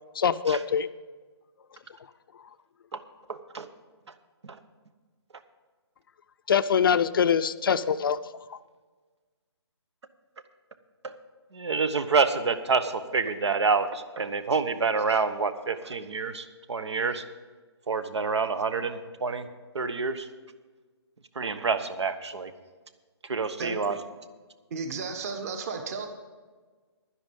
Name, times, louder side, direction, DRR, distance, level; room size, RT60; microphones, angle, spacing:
voice 1, 0.2-0.9 6.5-8.2 8.5-8.6, left 7 dB, 50° left, 12 dB, 0.5 m, -23 dB
voice 2, 3.3-3.7 4.4-4.6 11.0-11.1 11.5-17.2 17.9-19.5 19.7-20.3 21.4-22.5 23.3-24.0, right 4 dB, 75° right, 12 dB, 1.1 m, -27 dB
voice 3, 24.7-26.1, right 4 dB, 35° right, 6 dB, 1.5 m, -33 dB
11.5 x 10.5 x 5.3 m, 1.4 s
hypercardioid pair, 155°, 14 cm